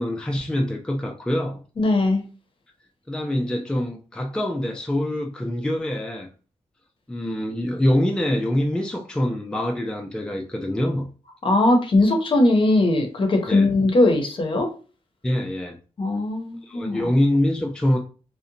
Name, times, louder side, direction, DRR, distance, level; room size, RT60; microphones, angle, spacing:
voice 1, 0.0-1.6 3.1-6.3 7.1-11.1 13.5-13.7 15.2-15.8 16.6-18.0, left 1 dB, 5° left, 0.3 m, -24 dB
voice 2, 1.8-2.2 11.4-14.7 16.0-17.1, left 2 dB, 50° left, 0.7 m, -20 dB
2.7 x 2.1 x 2.6 m
wide cardioid pair, 95°, 12 cm